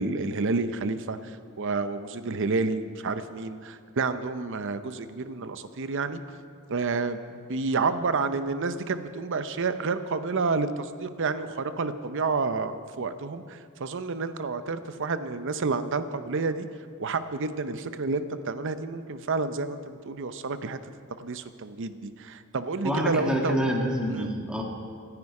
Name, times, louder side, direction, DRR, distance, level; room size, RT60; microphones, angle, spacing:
voice 1, 0.0-6.2 6.7-16.7 17.0-20.8 21.2-23.7 24.1-24.3, right 4 dB, 60° right, 11 dB, 0.7 m, -29 dB
voice 2, 22.8-24.6, equal, 5° right, -1 dB, 2.0 m, -27 dB
25.0 x 9.7 x 4.8 m, 2.2 s
head